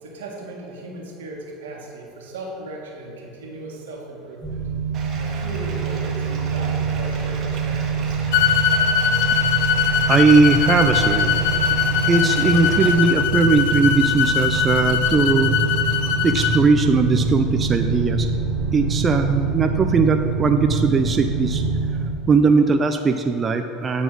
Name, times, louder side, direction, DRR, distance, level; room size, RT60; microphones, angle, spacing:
voice 1, 0.0-4.6 5.1-8.2, right 2 dB, 85° right, -1 dB, 1.6 m, -36 dB
sound 1, 4.4-22.1, right 5 dB, 15° right, 1.3 m, -25 dB
Bathtub (filling or washing), 4.9-12.9, right 3 dB, 45° right, 1.5 m, -37 dB
sound 2, 8.3-16.6, left 9 dB, 70° left, 0.6 m, -21 dB
voice 2, 9.8-11.3 12.1-15.6 16.2-18.3 18.7-21.6 22.3-24.0, right 4 dB, 30° right, 6 dB, 0.5 m, -19 dB
9.1 x 4.2 x 6.2 m, 2.5 s
supercardioid pair, 95°, 0 cm